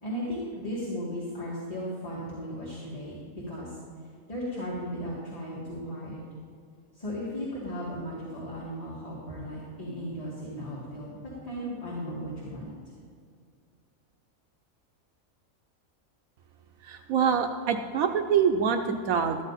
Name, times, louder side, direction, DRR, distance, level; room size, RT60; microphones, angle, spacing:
voice 1, 0.0-3.8 4.3-6.2 6.9-12.7, equal, 25° left, -7 dB, 2.1 m, -36 dB
voice 2, 16.8-19.4, right 7 dB, 80° right, 5 dB, 1.1 m, -25 dB
13.5 x 10.0 x 4.1 m, 2.2 s
omnidirectional pair, 1.5 m